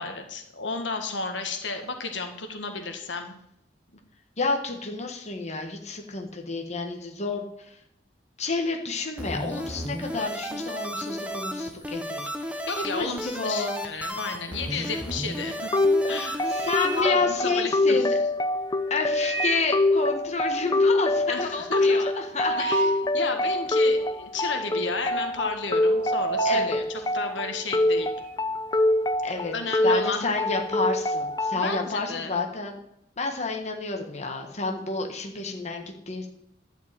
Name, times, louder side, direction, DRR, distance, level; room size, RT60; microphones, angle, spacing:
voice 1, 0.0-3.4 12.7-15.8 16.1-16.5 16.9-18.1 21.3-22.0 22.5-28.1 29.5-30.3 31.5-32.3, left 4 dB, 90° left, 6 dB, 1.7 m, -32 dB
voice 2, 4.4-7.8 8.4-12.6 13.0-13.8 14.7-14.9 16.5-18.1 18.9-22.6 26.4-26.8 29.2-29.5 29.8-32.8 33.2-36.3, left 3 dB, 40° left, 3 dB, 1.5 m, -30 dB
sound 1, 9.2-17.0, equal, 5° right, 1.1 m, -34 dB
sound 2, 15.7-31.7, left 2 dB, 20° left, 0.6 m, -25 dB
sound 3, 15.9-17.9 18.9-19.9 20.3-20.4 20.6-20.7 21.1-23.2 23.7-23.8 24.6-24.9 25.2-28.5 28.8-31.7, right 4 dB, 75° right, 1.7 m, -34 dB
12.0 x 5.3 x 8.9 m, 0.78 s
head